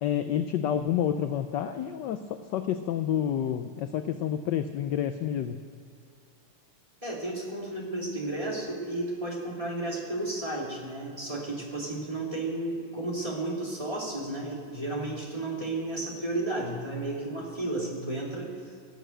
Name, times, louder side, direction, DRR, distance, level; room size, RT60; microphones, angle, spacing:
voice 1, 0.0-5.6, left 9 dB, 70° left, 9 dB, 1.1 m, -29 dB
voice 2, 7.0-18.6, right 2 dB, 15° right, -3 dB, 2.9 m, -33 dB
17.5 x 8.0 x 7.9 m, 2.5 s
omnidirectional pair, 2.4 m